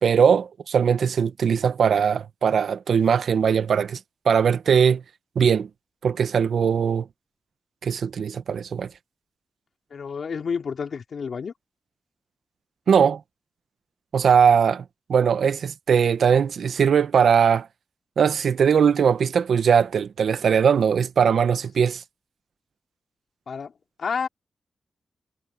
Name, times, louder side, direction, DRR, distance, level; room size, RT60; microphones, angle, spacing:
voice 1, 0.0-4.0 4.2-5.0 5.3-5.7 6.0-7.1 7.8-8.9 12.9-13.2 14.1-17.7 18.2-22.0, right 7 dB, 80° right, 1.2 m, -20 dB
voice 2, 9.9-11.5 23.5-23.7 24.0-24.3, left 6 dB, 65° left, 2.9 m, -29 dB
cardioid pair, 85°, 0 cm